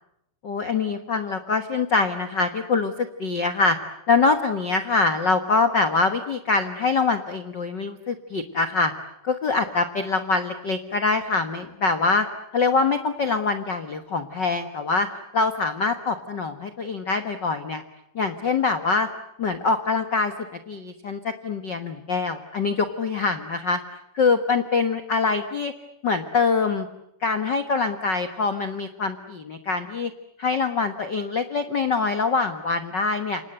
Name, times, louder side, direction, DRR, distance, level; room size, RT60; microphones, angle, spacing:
voice 1, 0.4-3.8 4.1-8.9 9.2-12.3 12.5-17.8 18.1-19.1 19.4-23.8 24.1-25.7 26.0-26.9 27.2-30.1 30.4-33.4, left 4 dB, 75° left, 9 dB, 1.0 m, -24 dB
29.0 x 26.0 x 7.9 m, 0.80 s
omnidirectional pair, 4.3 m